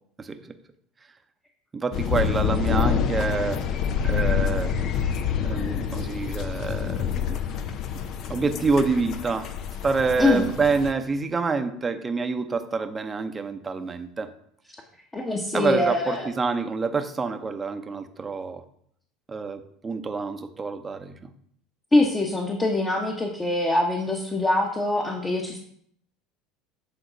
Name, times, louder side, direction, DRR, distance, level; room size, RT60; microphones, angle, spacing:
voice 1, 0.2-0.6 1.7-3.7 4.0-4.8 5.4-7.4 8.3-9.5 9.8-14.3 15.5-18.6 19.3-21.3, right 4 dB, 25° right, 8 dB, 0.8 m, -27 dB
sound 1, 1.9-10.9, left 8 dB, 50° left, 0.6 m, -27 dB
voice 2, 15.1-16.3 21.9-25.6, left 2 dB, 20° left, 1 dB, 1.1 m, -23 dB
8.6 x 3.9 x 4.0 m, 0.65 s
hypercardioid pair, 80°, 0 cm